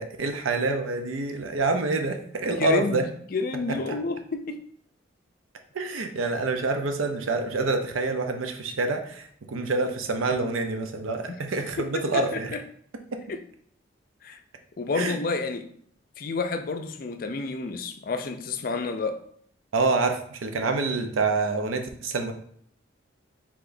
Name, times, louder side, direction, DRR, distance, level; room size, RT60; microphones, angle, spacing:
voice 1, 0.0-3.1 3.7-4.0 5.7-12.6 13.1-13.2 14.9-15.2 19.7-22.3, right 3 dB, 90° right, 6 dB, 0.6 m, -27 dB
voice 2, 2.6-3.0 3.3-4.6 11.3-11.4 12.1-12.6 13.3-13.4 14.2-14.4 14.8-15.7 16.2-19.2, left 3 dB, 45° left, 7 dB, 0.4 m, -30 dB
4.8 x 3.5 x 2.6 m, 0.62 s
head